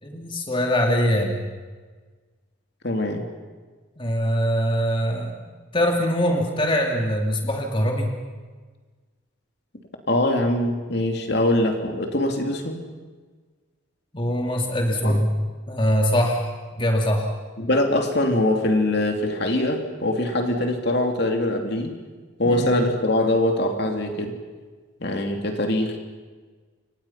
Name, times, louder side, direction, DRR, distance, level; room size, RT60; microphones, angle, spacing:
voice 1, 0.0-1.4 4.0-5.3 5.7-8.1 14.1-15.3 15.7-17.3 22.4-22.7, equal, 25° left, 1 dB, 2.8 m, -23 dB
voice 2, 2.8-3.2 10.1-12.8 15.0-15.2 17.6-22.0 22.4-24.3 25.0-26.0, left 1 dB, 50° left, 4 dB, 3.0 m, -23 dB
29.5 x 25.5 x 5.8 m, 1.4 s
head